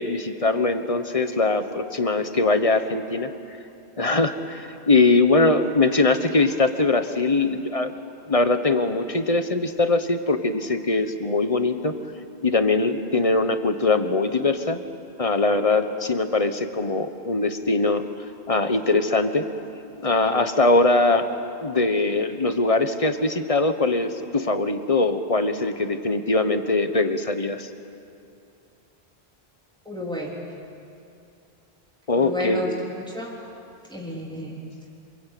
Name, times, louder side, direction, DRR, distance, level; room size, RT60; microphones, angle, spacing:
voice 1, 0.0-3.3 4.0-7.9 8.3-11.9 12.4-14.8 15.2-18.0 18.5-19.5 20.0-21.3 21.6-27.7 32.1-32.6, left 3 dB, 35° left, 9 dB, 1.2 m, -22 dB
voice 2, 29.9-30.4 32.2-33.4 33.9-34.7, left 1 dB, 5° left, -3 dB, 3.6 m, -31 dB
26.5 x 23.5 x 8.5 m, 2.6 s
omnidirectional pair, 1.1 m